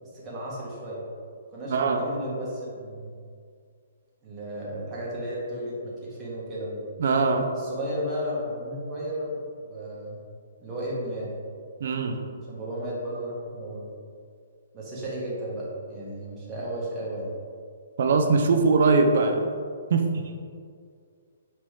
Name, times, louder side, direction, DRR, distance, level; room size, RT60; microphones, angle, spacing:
voice 1, 0.0-1.0 1.5-3.1 4.2-6.8 7.6-10.2 10.6-11.3 12.5-13.9 14.7-17.3, equal, 15° right, -7 dB, 1.2 m, -34 dB
voice 2, 1.7-2.0 7.0-7.5 11.8-12.2 18.0-19.5 19.9-20.2, right 4 dB, 60° right, 5 dB, 0.5 m, -21 dB
5.4 x 3.0 x 3.2 m, 2.2 s
hypercardioid pair, 150°, 0 cm